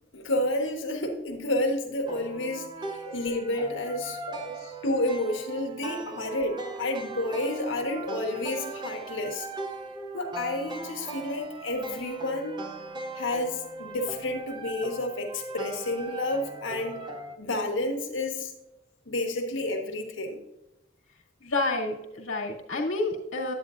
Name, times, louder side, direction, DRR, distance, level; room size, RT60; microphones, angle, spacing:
voice 1, 0.1-4.2 4.8-9.5 10.1-12.5 13.1-17.0 17.4-18.5 19.1-20.4, left 1 dB, 70° left, 3 dB, 1.3 m, -30 dB
sound 1, 2.1-17.4, right 3 dB, 20° right, 0.6 m, -39 dB
voice 2, 4.2-4.7 6.1-6.2 21.4-23.5, left 2 dB, 90° left, -1 dB, 1.6 m, -30 dB
9.3 x 8.8 x 2.5 m, 0.96 s
head